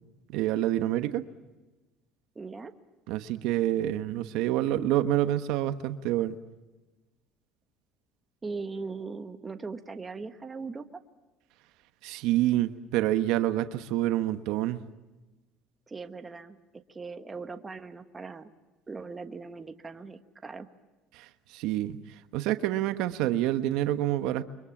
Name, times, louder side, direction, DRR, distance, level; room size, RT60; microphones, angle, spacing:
voice 1, 0.3-1.2 3.1-6.4 12.0-14.8 21.1-22.0 22.3-24.4, right 13 dB, 70° right, 10 dB, 1.1 m, -27 dB
voice 2, 2.3-2.7 8.4-10.8 15.9-16.6 16.9-18.5 18.9-20.7, right 4 dB, 20° right, 8 dB, 1.3 m, -39 dB
30.0 x 24.0 x 7.3 m, 1.1 s
cardioid pair, 125°, 0 cm